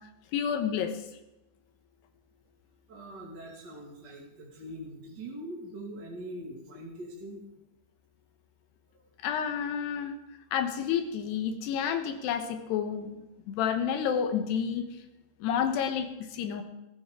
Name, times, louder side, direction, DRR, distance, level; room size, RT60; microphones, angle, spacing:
voice 1, 0.3-1.0 9.2-10.2 10.5-14.9 15.4-16.6, left 8 dB, 80° left, 6 dB, 3.2 m, -30 dB
voice 2, 2.9-7.4, right 1 dB, 35° right, -3 dB, 2.0 m, -42 dB
20.5 x 14.5 x 3.7 m, 0.95 s
omnidirectional pair, 4.7 m